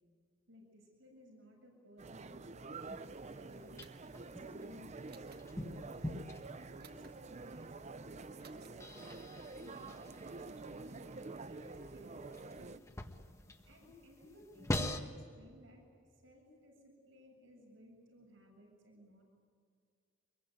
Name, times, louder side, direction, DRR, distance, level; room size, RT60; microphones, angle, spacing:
voice 1, 0.5-3.9 4.2-5.5 6.6-8.8 9.6-11.0 11.5-12.8 13.6-15.8 16.2-19.2, left 1 dB, 85° right, 0 dB, 7.5 m, -59 dB
sound 1, 2.0-12.8, right 3 dB, 35° right, 0.6 m, -48 dB
sound 2, 2.7-15.0, left 1 dB, 15° left, 1.5 m, -45 dB
sound 3, 3.8-4.2 5.1-5.5 6.8-7.2 8.4-8.7, right 5 dB, 55° right, 2.0 m, -59 dB
25.0 x 22.0 x 9.3 m, 2.2 s
head